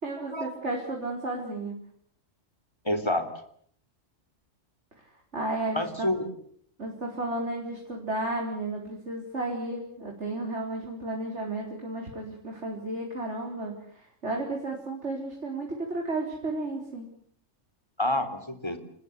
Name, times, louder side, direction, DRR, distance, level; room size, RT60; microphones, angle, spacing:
voice 1, 0.0-1.7 5.0-6.1 6.8-17.1, right 2 dB, 60° right, 0 dB, 4.6 m, -33 dB
voice 2, 2.9-3.3 5.7-6.3 18.0-18.8, left 1 dB, 20° left, 7 dB, 3.5 m, -28 dB
28.5 x 19.5 x 8.3 m, 0.63 s
omnidirectional pair, 1.3 m